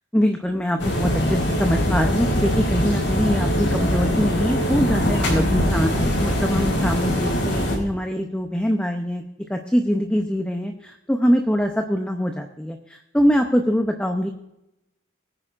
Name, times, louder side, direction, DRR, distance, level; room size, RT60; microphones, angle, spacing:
voice 1, 0.1-9.2 9.5-14.3, equal, 5° left, 4 dB, 0.7 m, -23 dB
sound 1, 0.8-7.8, equal, 80° left, 4.4 m, -22 dB
21.0 x 9.8 x 2.5 m, 0.88 s
head